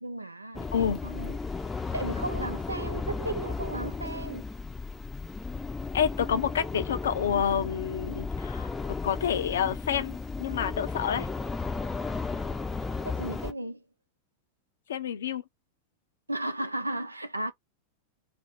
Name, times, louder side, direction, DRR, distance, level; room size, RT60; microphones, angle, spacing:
voice 1, 0.0-1.4 1.9-4.4 13.0-13.8 16.3-17.5, right 1 dB, 85° right, 0.4 m, -35 dB
sound 1, 0.5-13.5, left 4 dB, 10° left, 0.5 m, -34 dB
voice 2, 5.9-8.7 9.0-11.3 14.9-15.4, left 8 dB, 65° left, 0.4 m, -28 dB
2.5 x 2.0 x 3.1 m
figure-of-eight pair, 90°, 0 cm